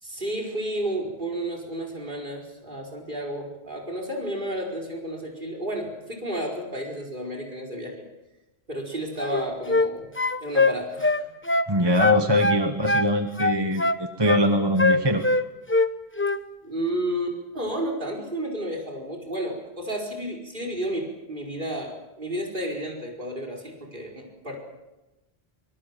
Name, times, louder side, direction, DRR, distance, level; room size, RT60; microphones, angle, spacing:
voice 1, 0.0-7.9 8.7-10.1 10.4-11.3 16.6-24.6, right 1 dB, 50° right, 2 dB, 5.2 m, -32 dB
sound 1, 9.2-9.9 10.2-11.7 12.0-13.1 13.4-14.4 14.8-15.9 16.2-16.4, left 2 dB, 15° left, 0.8 m, -22 dB
voice 2, 11.7-15.2, left 1 dB, 25° right, 6 dB, 1.3 m, -22 dB
23.5 x 22.5 x 7.6 m, 1.0 s
omnidirectional pair, 1.1 m